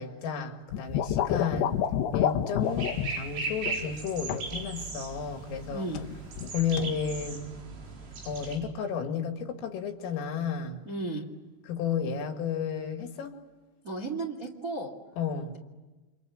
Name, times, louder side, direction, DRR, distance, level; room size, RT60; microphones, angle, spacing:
voice 1, 0.0-1.8 2.1-5.9 6.5-7.5 8.2-10.8 11.6-13.3 15.2-15.5, left 6 dB, 90° left, 5 dB, 5.0 m, -32 dB
sound 1, 0.7-3.1 3.7-3.9 4.3-4.6 5.9-6.5 6.8-7.0, left 10 dB, 70° left, 3.0 m, -28 dB
sound 2, 2.6-8.6, right 3 dB, 75° right, 7.0 m, -38 dB
voice 2, 5.7-6.0 10.8-11.3 13.8-14.9 15.5-15.6, right 2 dB, 30° right, 3 dB, 1.5 m, -34 dB
29.5 x 27.0 x 7.4 m, 1.2 s
omnidirectional pair, 5.7 m